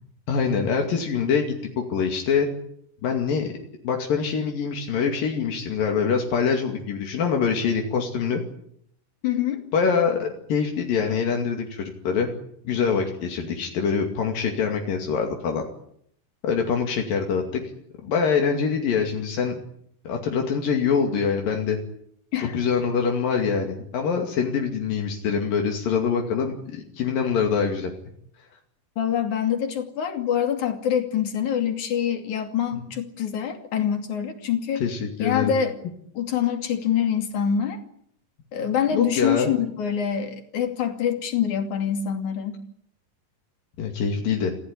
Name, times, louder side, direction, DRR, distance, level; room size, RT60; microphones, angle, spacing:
voice 1, 0.3-2.5 3.0-3.5 3.8-8.4 9.7-12.3 12.6-15.6 16.4-17.6 18.0-19.6 20.1-21.8 22.4-27.9 32.7-32.8 34.8-35.5 38.9-39.5 43.8-44.5, left 6 dB, 80° left, 2 dB, 4.2 m, -24 dB
voice 2, 9.2-9.7 22.3-22.6 29.0-34.8 35.2-35.8 36.2-37.8 38.5-42.6, left 9 dB, 60° left, 6 dB, 4.0 m, -25 dB
27.5 x 16.0 x 10.0 m, 0.69 s
omnidirectional pair, 4.0 m